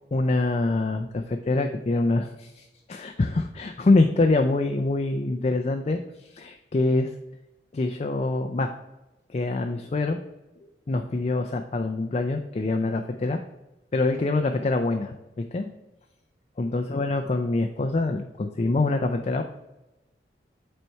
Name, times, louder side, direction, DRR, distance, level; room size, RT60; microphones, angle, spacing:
voice 1, 0.1-7.1 7.7-8.7 9.3-10.2 10.6-13.4 13.9-15.7 16.6-19.4, left 2 dB, 35° left, 6 dB, 0.4 m, -25 dB
8.1 x 4.4 x 4.5 m, 0.99 s
head